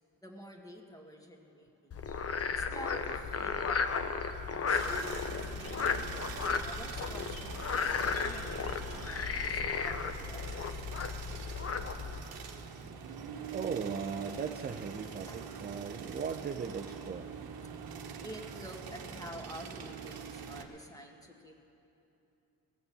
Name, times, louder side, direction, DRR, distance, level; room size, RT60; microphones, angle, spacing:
voice 1, 0.2-1.9 2.6-4.1 4.7-11.4 15.3-15.4 18.2-21.6, equal, 10° left, 1 dB, 1.7 m, -49 dB
Frog, 1.9-12.2, left 5 dB, 35° left, 0.8 m, -34 dB
sound 1, 4.7-20.7, right 6 dB, 55° right, 1.2 m, -44 dB
voice 2, 13.5-17.3, right 6 dB, 20° right, 6 dB, 0.5 m, -38 dB
18.5 x 6.7 x 7.0 m, 2.9 s
supercardioid pair, 75°, 44 cm